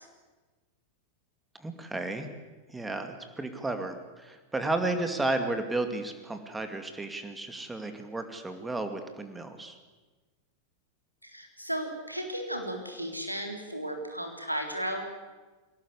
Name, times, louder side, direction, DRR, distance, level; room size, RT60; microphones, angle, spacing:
voice 1, 1.6-2.3 2.7-9.8, right 2 dB, 10° right, 7 dB, 2.3 m, -33 dB
voice 2, 11.2-15.1, right 1 dB, 90° right, 3 dB, 3.6 m, -35 dB
22.0 x 18.0 x 8.4 m, 1.3 s
figure-of-eight pair, 90°, 0 cm